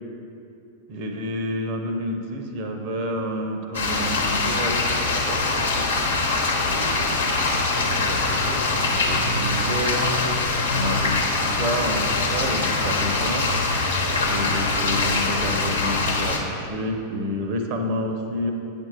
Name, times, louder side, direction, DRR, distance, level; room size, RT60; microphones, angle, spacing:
voice 1, 0.9-5.9 6.6-10.1 10.6-13.8 14.3-18.5, equal, 45° right, 4 dB, 0.8 m, -30 dB
sound 1, 3.7-16.4, left 3 dB, 70° left, 1.0 m, -23 dB
8.6 x 5.2 x 4.6 m, 2.7 s
figure-of-eight pair, 90°, 0 cm